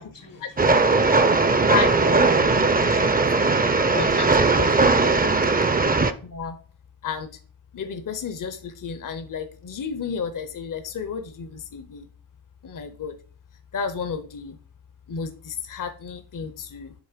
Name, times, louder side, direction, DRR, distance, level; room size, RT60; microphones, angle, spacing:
voice 1, 0.0-1.7 2.3-4.3 4.8-5.7, left 3 dB, 90° left, 4 dB, 1.7 m, -49 dB
Train, 0.6-6.1, right 3 dB, 20° right, 0.5 m, -19 dB
voice 2, 1.6-3.1 3.4-3.6 3.9-5.7 6.0-6.6 7.0-7.3 7.7-12.1 12.6-13.2 13.7-14.6 15.1-16.9, left 6 dB, 50° left, 9 dB, 0.6 m, -32 dB
7.5 x 2.9 x 5.0 m, 0.43 s
wide cardioid pair, 45°, 42 cm